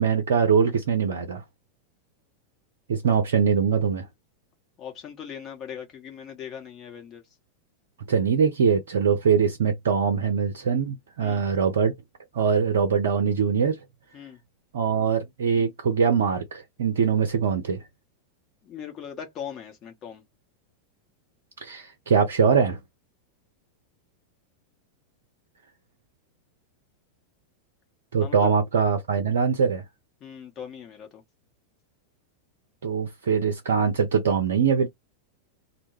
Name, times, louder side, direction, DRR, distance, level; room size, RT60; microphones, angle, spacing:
voice 1, 0.0-1.4 2.9-4.1 8.1-11.9 12.3-13.8 14.7-17.8 21.6-22.8 28.1-29.8 32.8-34.9, right 6 dB, 60° right, 0.5 m, -22 dB
voice 2, 4.8-7.2 11.2-11.5 14.1-14.4 18.6-20.2 28.2-28.5 30.2-31.2, left 8 dB, 30° left, 0.9 m, -39 dB
2.1 x 2.1 x 3.1 m
figure-of-eight pair, 90°, 0 cm